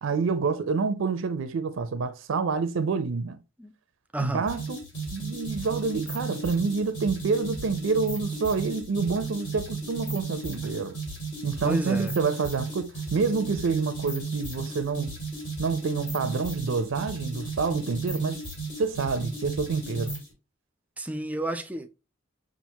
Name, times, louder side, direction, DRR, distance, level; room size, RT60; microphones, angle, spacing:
voice 1, 0.0-3.4 4.2-4.8 5.1-11.0 11.4-15.1 15.6-18.4 18.8-20.1, right 4 dB, 80° right, 0.4 m, -28 dB
voice 2, 4.1-4.5 11.6-12.1 21.0-21.9, right 1 dB, 10° right, 0.3 m, -30 dB
sound 1, 4.5-20.3, right 3 dB, 65° left, 2.4 m, -35 dB
5.7 x 2.5 x 2.7 m
head